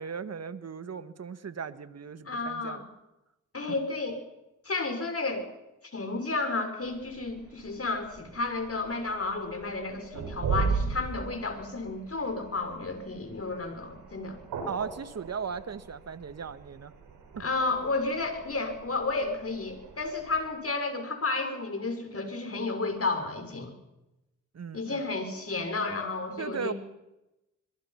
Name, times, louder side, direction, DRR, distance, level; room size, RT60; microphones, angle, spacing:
voice 1, 0.0-2.9 14.6-16.9 24.5-25.0 26.4-26.7, right 6 dB, 50° right, 12 dB, 1.7 m, -37 dB
voice 2, 2.3-2.8 3.5-4.2 4.6-5.5 5.9-14.4 17.4-23.7 24.7-26.7, left 3 dB, 45° left, 6 dB, 6.2 m, -32 dB
sound 1, 6.8-20.5, right 5 dB, 85° right, 5.9 m, -38 dB
26.5 x 22.0 x 5.9 m, 0.94 s
supercardioid pair, 50°, 33 cm